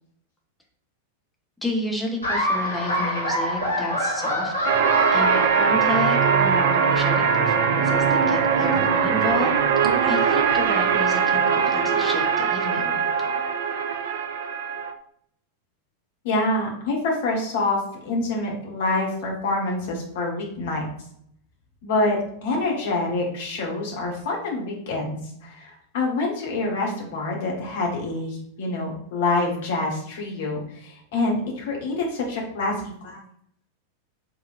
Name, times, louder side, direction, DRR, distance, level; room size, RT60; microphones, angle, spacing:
voice 1, 1.6-4.5 5.1-9.6 10.0-13.0, left 2 dB, 5° left, -1 dB, 1.1 m, -31 dB
Laughter, 2.2-6.2, equal, 75° left, 1.6 m, -26 dB
warm fanfares, 4.6-14.9, right 6 dB, 55° right, 0.5 m, -21 dB
voice 2, 16.2-20.8 21.8-33.2, left 2 dB, 55° left, -1 dB, 1.4 m, -26 dB
4.6 x 3.5 x 2.6 m, 0.69 s
figure-of-eight pair, 90°, 0 cm